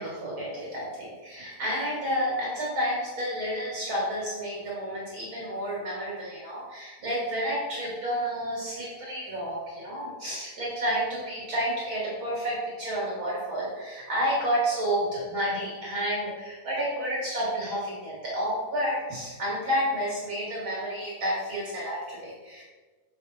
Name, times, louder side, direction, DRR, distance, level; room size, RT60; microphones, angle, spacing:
voice 1, 0.0-22.6, equal, 45° right, -6 dB, 2.5 m, -30 dB
6.8 x 6.2 x 4.3 m, 1.3 s
omnidirectional pair, 3.4 m